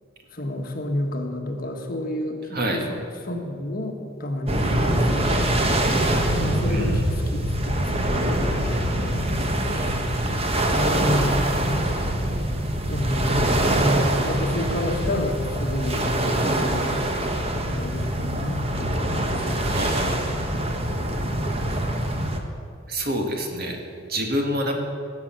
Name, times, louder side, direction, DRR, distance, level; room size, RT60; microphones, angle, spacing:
voice 1, 0.3-2.9 3.2-3.9 4.2-5.8 6.4-7.9 8.1-9.9 10.7-11.4 12.9-17.0 17.7-20.4 20.7-20.8 21.3-21.7, left 1 dB, 45° left, 2 dB, 1.6 m, -30 dB
voice 2, 2.5-2.9 6.7-7.0 19.7-20.2 22.9-23.8 24.1-24.7, equal, 50° right, 2 dB, 2.0 m, -27 dB
sound 1, 4.5-22.4, right 1 dB, 30° right, 1.3 m, -24 dB
18.0 x 6.9 x 8.9 m, 2.5 s
head